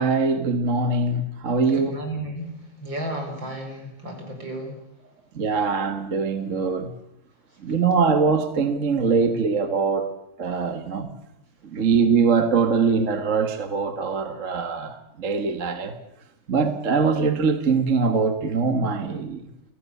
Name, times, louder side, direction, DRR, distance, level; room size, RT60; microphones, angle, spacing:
voice 1, 0.0-2.0 5.3-6.9 7.6-10.1 10.4-11.1 11.6-16.0 16.5-19.4, right 5 dB, 40° right, 1.6 m, -22 dB
voice 2, 1.7-4.8, right 1 dB, 65° right, 6.1 m, -33 dB
28.0 x 17.0 x 8.3 m
omnidirectional pair, 2.2 m